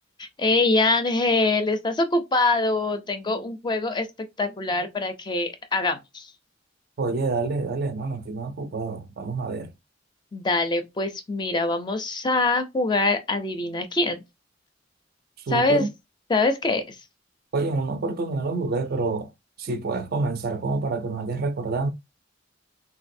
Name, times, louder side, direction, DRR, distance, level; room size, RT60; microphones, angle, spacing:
voice 1, 0.2-6.3 10.3-14.2 15.5-15.9 16.3-17.0, left 2 dB, 25° left, 0.4 m, -24 dB
voice 2, 7.0-9.7 15.5-15.9 17.5-19.3 19.6-21.9, right 3 dB, 50° right, 0.4 m, -27 dB
3.2 x 2.6 x 2.6 m
head